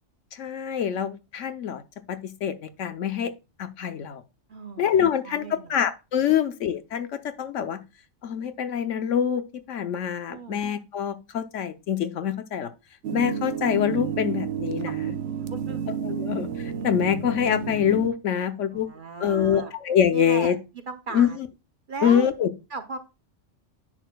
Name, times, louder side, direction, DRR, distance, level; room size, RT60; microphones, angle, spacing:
voice 1, 0.3-1.8 2.1-3.3 3.6-4.2 4.8-7.8 8.2-9.4 9.7-12.7 13.1-15.2 16.0-18.9 19.2-20.6 21.1-21.5 22.0-22.5, left 8 dB, 70° left, 1.1 m, -25 dB
voice 2, 4.5-4.9 5.2-5.8 10.3-10.7 15.5-15.8 18.4-19.7 20.1-20.6 20.9-21.4 21.9-22.3 22.7-23.0, right 3 dB, 50° right, 0.8 m, -37 dB
sound 1, 13.0-18.1, right 7 dB, 65° right, 1.0 m, -30 dB
10.0 x 6.3 x 2.2 m
omnidirectional pair, 1.4 m